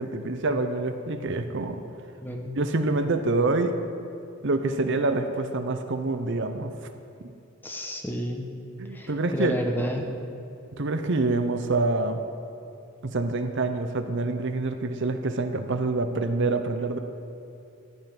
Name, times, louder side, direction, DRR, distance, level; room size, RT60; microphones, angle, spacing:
voice 1, 0.0-1.8 2.6-3.7 4.4-6.7 7.2-7.3 8.8-9.6 10.7-12.2 13.0-17.0, right 3 dB, 55° right, 8 dB, 0.7 m, -26 dB
voice 2, 2.2-2.5 7.6-8.4 8.9-10.1, equal, 10° left, 2 dB, 1.1 m, -31 dB
15.0 x 5.6 x 9.5 m, 2.7 s
head